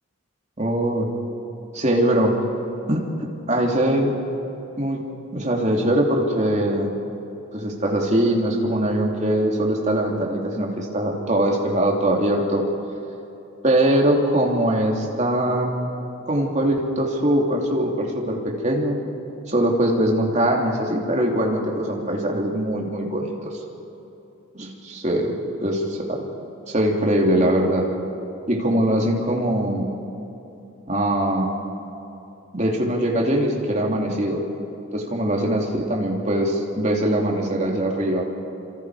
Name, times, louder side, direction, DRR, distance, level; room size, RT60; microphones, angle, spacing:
voice 1, 0.6-1.1 1.7-2.3 2.9-3.0 3.5-4.1 4.8-5.0 5.3-6.9 7.5-12.6 13.6-15.9 16.3-19.0 19.5-23.6 24.5-26.3 26.7-27.9 28.5-29.8 30.9-31.5 32.5-34.4 34.9-38.3, right 1 dB, 30° right, 0 dB, 2.8 m, -22 dB
28.0 x 26.5 x 4.9 m, 3.0 s
head